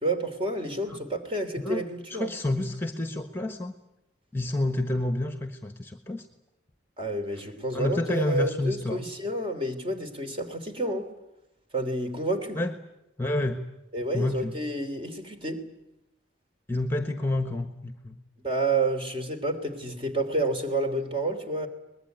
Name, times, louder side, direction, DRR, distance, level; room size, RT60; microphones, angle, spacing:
voice 1, 0.0-2.3 7.0-11.1 11.7-12.6 13.9-15.6 18.4-21.7, right 2 dB, 30° right, 6 dB, 3.1 m, -29 dB
voice 2, 1.6-3.7 4.3-6.3 7.3-7.4 7.7-9.0 12.5-12.7 13.2-13.7 14.1-14.6 16.7-18.2, left 1 dB, 10° left, 7 dB, 1.3 m, -29 dB
23.5 x 21.0 x 9.4 m, 0.91 s
head